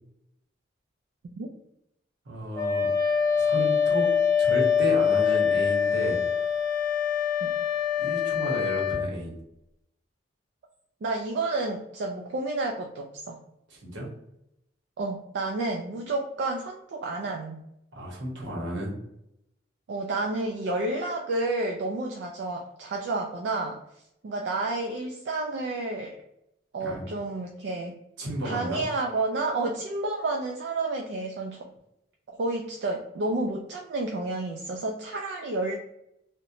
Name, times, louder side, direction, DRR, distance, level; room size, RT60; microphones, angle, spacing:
voice 1, 2.3-2.9 3.4-4.1 4.4-6.2 8.0-9.4 13.7-14.1 17.9-18.9 26.8-27.1 28.2-28.8, right 1 dB, 80° right, -2 dB, 0.9 m, -32 dB
Wind instrument woodwind instrument, 2.5-9.1, left 7 dB, 15° left, 0.4 m, -24 dB
voice 2, 11.0-13.4 15.0-17.6 19.9-23.8 24.2-26.2 26.7-27.9 28.4-31.7 32.4-35.8, right 2 dB, 65° right, 1 dB, 0.3 m, -30 dB
2.8 x 2.1 x 2.5 m, 0.81 s
head